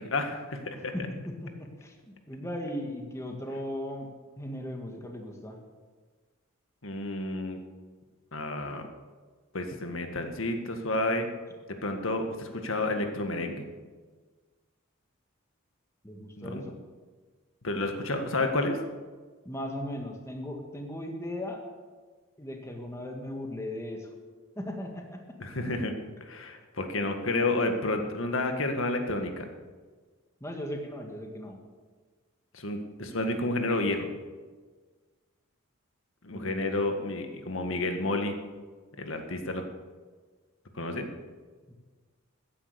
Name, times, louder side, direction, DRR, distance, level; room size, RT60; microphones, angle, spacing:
voice 1, 0.0-0.9 6.8-7.6 8.3-8.8 9.5-11.3 11.7-13.7 16.4-16.6 17.6-18.8 25.4-25.9 26.2-29.5 32.5-34.1 36.2-38.4 39.0-39.6 40.8-41.1, left 2 dB, 75° left, 5 dB, 1.8 m, -30 dB
voice 2, 0.9-4.1 4.4-5.6 16.0-16.7 19.4-21.6 22.4-24.1 24.5-25.2 30.4-31.6 36.3-36.7 41.7-41.8, left 1 dB, 15° left, 2 dB, 1.7 m, -37 dB
14.5 x 10.0 x 6.9 m, 1.4 s
head